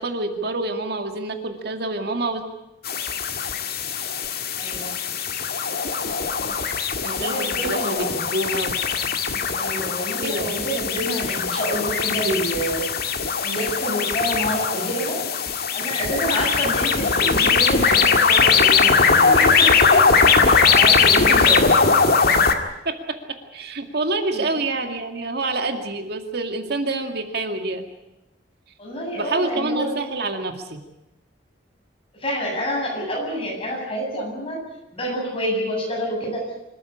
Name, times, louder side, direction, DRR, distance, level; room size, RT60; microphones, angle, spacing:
voice 1, 0.0-2.4 7.0-8.7 10.2-10.6 21.2-21.4 22.8-22.9 23.5-27.9 29.2-30.8, right 2 dB, 60° right, 6 dB, 2.2 m, -27 dB
sound 1, 2.8-22.5, left 5 dB, 55° left, 2.1 m, -20 dB
voice 2, 4.6-4.9 7.1-8.2 9.5-12.9 13.4-15.2 15.7-20.0 20.6-21.8 24.3-24.4 28.8-30.0 32.1-34.7 34.9-36.4, equal, 30° left, 0 dB, 8.0 m, -28 dB
25.5 x 14.0 x 10.0 m, 0.93 s
head